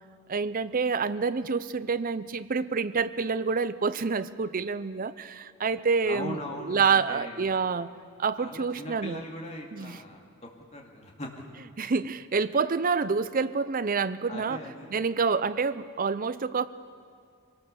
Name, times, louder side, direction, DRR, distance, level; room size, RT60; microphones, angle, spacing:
voice 1, 0.3-7.9 8.2-9.2 9.7-10.0 11.8-14.6 14.9-16.7, right 5 dB, 40° right, 14 dB, 0.5 m, -27 dB
voice 2, 6.0-7.4 8.4-10.3 10.7-11.4 14.3-15.0, left 1 dB, 30° left, 0 dB, 2.4 m, -40 dB
25.0 x 18.5 x 6.9 m, 2.3 s
head